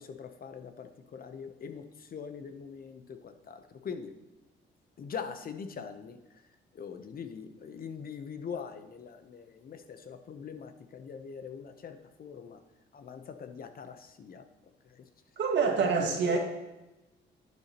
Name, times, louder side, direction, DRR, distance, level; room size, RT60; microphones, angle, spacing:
voice 1, 0.0-4.2 5.0-6.2 6.7-12.6 12.9-14.5 14.8-15.1 15.8-16.4, left 6 dB, 50° left, 9 dB, 0.8 m, -42 dB
voice 2, 15.4-16.4, right 5 dB, 65° right, 2 dB, 1.7 m, -26 dB
10.5 x 8.2 x 2.9 m, 1.0 s
cardioid pair, 90°, 20 cm